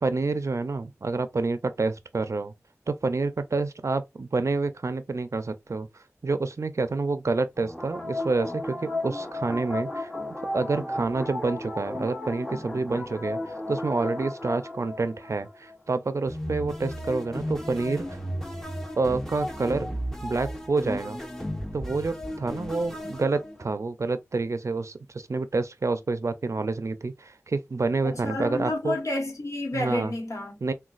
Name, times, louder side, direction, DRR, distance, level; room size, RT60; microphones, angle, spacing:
voice 1, 0.0-2.5 2.9-5.9 6.2-10.1 10.5-18.2 19.0-21.2 21.7-29.0 29.7-30.1 30.6-30.7, right 3 dB, 65° right, 0.4 m, -28 dB
sound 1, 7.6-15.8 16.3-23.7, left 1 dB, 5° left, 0.8 m, -34 dB
voice 2, 28.0-30.7, left 1 dB, 75° left, 1.1 m, -30 dB
3.9 x 2.2 x 2.4 m
wide cardioid pair, 45°, 5 cm